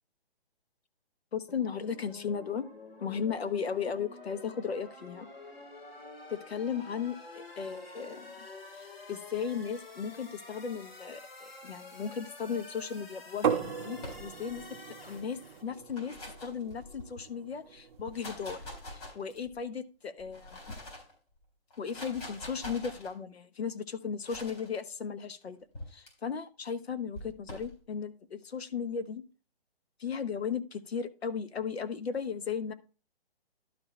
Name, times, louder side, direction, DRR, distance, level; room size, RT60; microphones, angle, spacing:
voice 1, 1.3-2.7 3.0-5.3 6.3-8.5 8.7-16.1 16.4-18.6 18.9-20.8 21.8-25.6 25.9-29.2 30.0-32.7, left 6 dB, 85° left, 12 dB, 1.2 m, -36 dB
sound 1, 1.5-15.6, left 2 dB, 70° left, 3.6 m, -49 dB
sound 2, 13.4-19.1, right 7 dB, 25° right, 0.9 m, -37 dB
sound 3, 14.0-14.6 15.7-17.2 17.9-19.6 20.2-21.1 21.7-23.1 24.2-24.7 25.7-26.1 27.1-27.7, left 1 dB, 40° left, 3.9 m, -45 dB
12.0 x 4.4 x 4.4 m, 0.34 s
hypercardioid pair, 165°, 31 cm